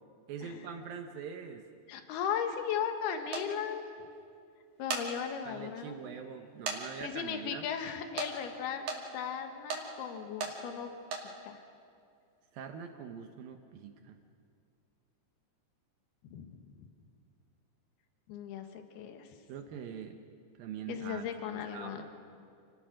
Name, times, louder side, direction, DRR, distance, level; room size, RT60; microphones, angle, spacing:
voice 1, 0.3-1.6 5.5-7.7 12.5-14.2 19.5-20.2 20.6-22.0, right 7 dB, 75° right, 6 dB, 2.2 m, -43 dB
voice 2, 1.9-3.8 4.8-6.0 7.0-8.8 9.1-10.9 11.2-11.6 16.2-16.9 18.3-19.3 20.9-22.0, left 8 dB, 65° left, 6 dB, 3.1 m, -37 dB
sound 1, 3.3-3.5 4.7-5.1 5.6-5.7 6.7-6.8 7.1-7.2 8.2-8.3 8.9-9.0 9.7-9.8 10.4-10.5 11.0-11.2, right 5 dB, 55° right, 3.7 m, -35 dB
28.0 x 18.5 x 6.4 m, 2.4 s
omnidirectional pair, 5.3 m